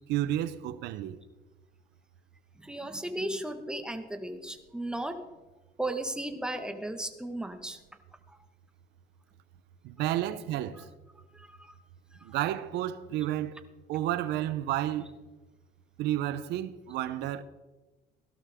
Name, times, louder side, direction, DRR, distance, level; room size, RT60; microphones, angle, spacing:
voice 1, 0.1-1.2 9.8-10.8 12.2-13.6 13.9-15.1 16.0-17.4, right 13 dB, 85° right, 0.9 m, -31 dB
voice 2, 2.6-5.2 5.8-7.8 8.3-8.4 10.7-10.8 11.3-11.8 12.2-12.4, right 1 dB, 5° right, 1.6 m, -36 dB
16.5 x 12.5 x 3.7 m
cardioid pair, 110°, 17 cm